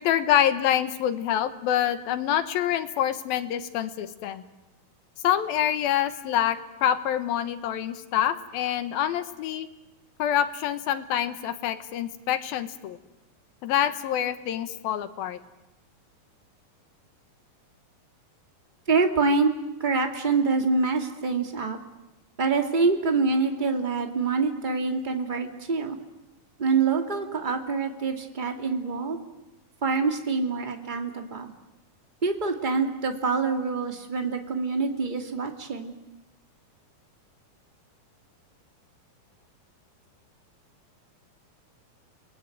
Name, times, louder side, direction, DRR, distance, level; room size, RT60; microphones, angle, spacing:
voice 1, 0.0-4.4 5.2-9.7 10.2-13.0 13.6-15.4, left 10 dB, 80° left, 10 dB, 3.0 m, -26 dB
voice 2, 18.9-19.5 19.8-21.8 22.4-26.0 26.6-29.2 29.8-31.5 32.2-35.9, right 4 dB, 15° right, 4 dB, 1.7 m, -25 dB
30.0 x 20.5 x 9.3 m, 0.99 s
omnidirectional pair, 4.2 m